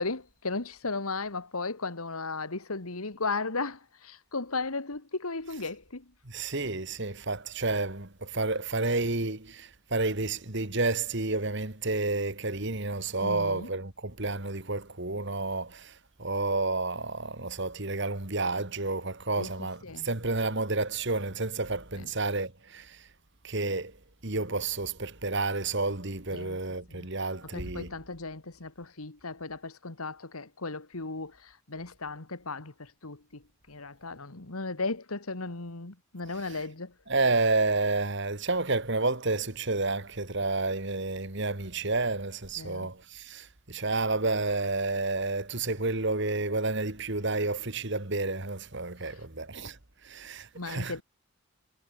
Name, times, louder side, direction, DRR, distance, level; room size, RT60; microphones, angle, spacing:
voice 1, 0.0-6.1 13.2-13.7 19.4-20.1 21.9-22.1 26.3-26.6 26.9-27.1 27.4-36.9 42.6-42.9 50.5-51.0, left 3 dB, 85° left, 2.0 m, -36 dB
voice 2, 6.3-15.9 16.2-23.0 23.4-23.9 24.2-27.9 36.4-36.7 37.1-49.8 50.0-51.0, right 3 dB, 55° right, 2.2 m, -30 dB
head